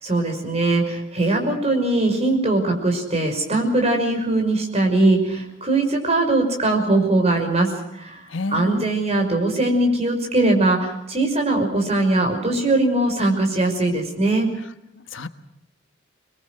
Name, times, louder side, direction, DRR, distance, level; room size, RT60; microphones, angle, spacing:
voice 1, 0.0-8.2 8.5-14.5, right 2 dB, 35° right, 3 dB, 5.8 m, -21 dB
voice 2, 8.3-8.8 15.0-15.3, left 3 dB, 80° left, 10 dB, 1.3 m, -29 dB
26.5 x 22.0 x 6.4 m, 0.83 s
head